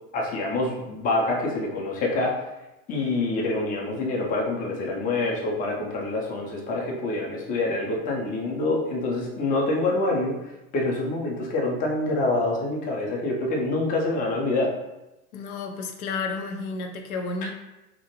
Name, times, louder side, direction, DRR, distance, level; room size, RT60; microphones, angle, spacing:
voice 1, 0.1-2.4 2.9-10.4 10.7-14.7 17.4-17.5, left 2 dB, 20° left, -1 dB, 0.5 m, -26 dB
voice 2, 15.3-17.5, left 4 dB, 70° left, 4 dB, 0.5 m, -31 dB
2.5 x 2.1 x 2.9 m, 0.97 s
hypercardioid pair, 90°, 44 cm